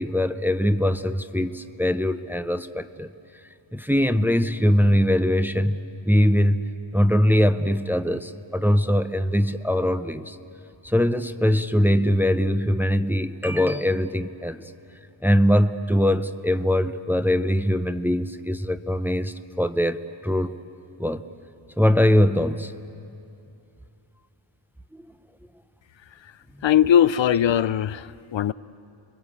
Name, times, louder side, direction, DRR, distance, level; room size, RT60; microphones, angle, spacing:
voice 1, 0.0-3.1 3.7-6.6 6.9-10.4 10.8-14.6 15.2-20.5 21.0-21.2 21.8-22.7 24.9-25.0, equal, 5° right, 10 dB, 0.6 m, -22 dB
voice 2, 26.6-28.5, left 9 dB, 65° left, 16 dB, 0.5 m, -20 dB
29.5 x 22.0 x 8.4 m, 2.6 s
wide cardioid pair, 135°, 49 cm